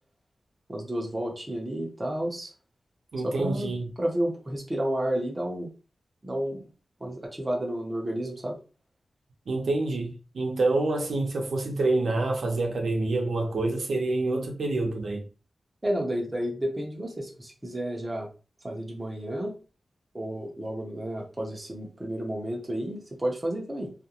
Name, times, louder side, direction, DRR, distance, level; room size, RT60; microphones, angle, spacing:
voice 1, 0.7-2.5 3.2-5.7 6.2-6.7 7.0-8.6 15.8-18.3 18.6-19.6 20.1-23.9, right 1 dB, 20° right, 0.6 m, -31 dB
voice 2, 3.1-3.9 9.5-15.2, right 2 dB, 75° right, 0.6 m, -27 dB
2.4 x 2.1 x 2.8 m
wide cardioid pair, 150°, 0 cm